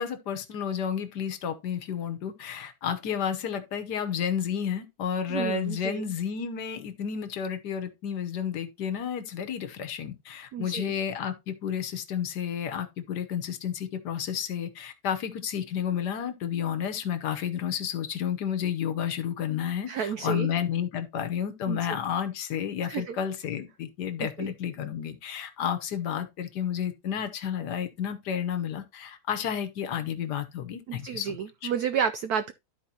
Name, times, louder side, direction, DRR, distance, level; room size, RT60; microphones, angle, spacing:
voice 1, 0.0-31.4 31.6-31.7, left 8 dB, 60° left, 1.3 m, -31 dB
voice 2, 5.3-6.0 10.5-10.9 19.9-20.5 21.7-22.0 22.8-23.2 24.2-24.5 30.9-32.5, right 7 dB, 85° right, 0.8 m, -31 dB
13.0 x 4.6 x 2.8 m
omnidirectional pair, 2.2 m